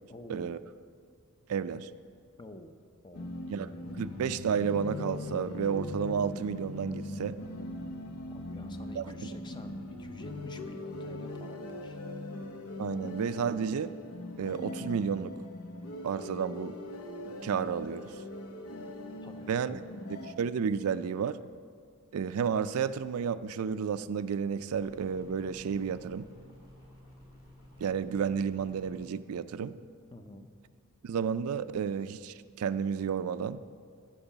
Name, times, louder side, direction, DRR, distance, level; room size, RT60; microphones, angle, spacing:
voice 1, 0.1-0.6 2.4-2.7 3.0-3.3 8.3-12.0 19.2-19.9 30.1-30.5, left 1 dB, 20° left, 7 dB, 0.6 m, -49 dB
voice 2, 1.5-1.9 3.5-3.7 4.0-7.4 9.0-9.1 12.8-13.9 14.4-15.3 16.0-16.7 17.4-18.0 19.5-19.8 20.4-21.4 22.1-26.2 27.8-29.8 31.0-33.6, right 7 dB, 75° right, 13 dB, 0.4 m, -31 dB
sound 1, 3.1-20.3, left 2 dB, 75° left, 0.8 m, -41 dB
sound 2, 24.7-29.1, left 1 dB, 40° left, 2.7 m, -54 dB
14.0 x 4.8 x 7.2 m, 2.2 s
head